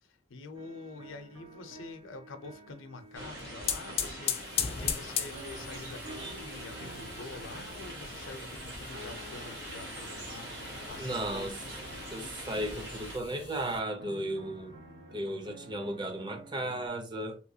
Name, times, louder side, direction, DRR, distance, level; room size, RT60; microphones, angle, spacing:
voice 1, 0.0-11.9 14.6-15.2, left 3 dB, 85° left, 0.5 m, -47 dB
sound 1, 0.5-16.9, right 2 dB, 85° right, 0.9 m, -51 dB
sound 2, 3.1-13.2, right 1 dB, 65° right, 1.4 m, -43 dB
sound 3, 3.2-13.8, left 8 dB, 30° left, 0.3 m, -39 dB
voice 2, 11.0-11.5 12.1-14.7 15.1-17.4, right 1 dB, 25° right, 0.5 m, -35 dB
3.0 x 2.9 x 2.7 m
head